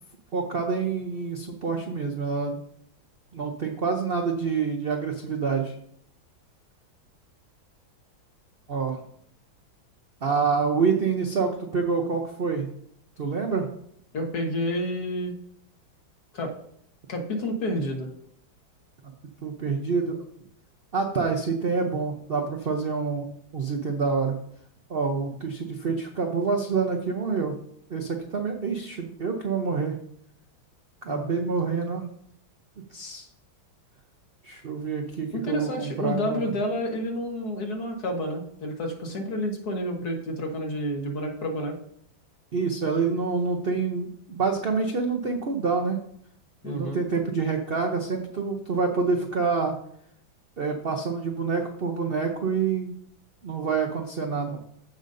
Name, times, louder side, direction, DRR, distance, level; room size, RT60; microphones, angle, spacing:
voice 1, 0.3-2.6 3.3-5.7 8.7-9.0 10.2-12.7 13.2-13.7 19.4-20.2 20.9-23.3 23.5-24.4 24.9-27.6 27.9-29.9 31.0-32.0 32.9-33.3 34.4-36.5 42.5-46.0 46.6-49.7 50.6-52.9 53.4-54.6, right 5 dB, 70° right, 2 dB, 0.5 m, -27 dB
voice 2, 14.1-15.3 16.3-16.5 17.1-18.1 31.1-31.2 35.3-41.8 46.6-47.0, equal, 55° left, 2 dB, 1.8 m, -29 dB
15.0 x 5.2 x 2.6 m, 0.68 s
omnidirectional pair, 2.1 m